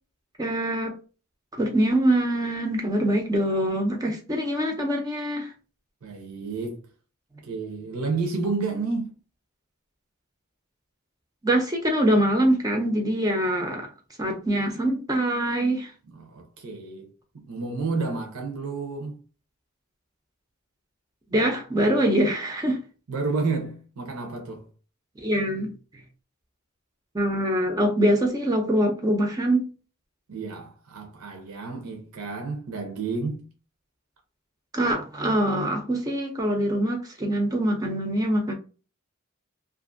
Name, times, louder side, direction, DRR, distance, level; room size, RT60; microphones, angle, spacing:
voice 1, 0.4-1.0 1.6-5.5 11.4-13.9 14.2-15.9 21.3-22.8 25.2-25.7 27.1-29.7 34.7-38.5, right 1 dB, 15° right, 0.4 m, -24 dB
voice 2, 6.0-6.8 7.4-9.2 16.1-19.2 23.1-24.7 30.3-33.5, right 4 dB, 90° right, 0.7 m, -31 dB
2.5 x 2.5 x 2.5 m
head